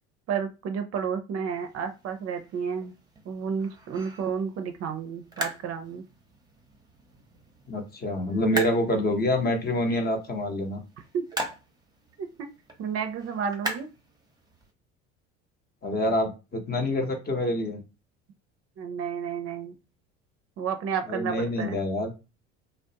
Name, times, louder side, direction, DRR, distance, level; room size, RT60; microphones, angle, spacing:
voice 1, 0.3-3.0 3.3-6.0 11.1-11.2 12.2-12.5 12.8-13.9 18.8-19.8 20.6-21.8, right 7 dB, 45° right, 6 dB, 0.5 m, -31 dB
sound 1, 1.5-14.7, right 1 dB, 10° right, 0.7 m, -40 dB
voice 2, 7.7-10.8 15.8-17.8 21.1-22.1, left 1 dB, 30° left, 4 dB, 0.7 m, -26 dB
2.4 x 2.0 x 2.7 m, 0.29 s
hypercardioid pair, 75°, 34 cm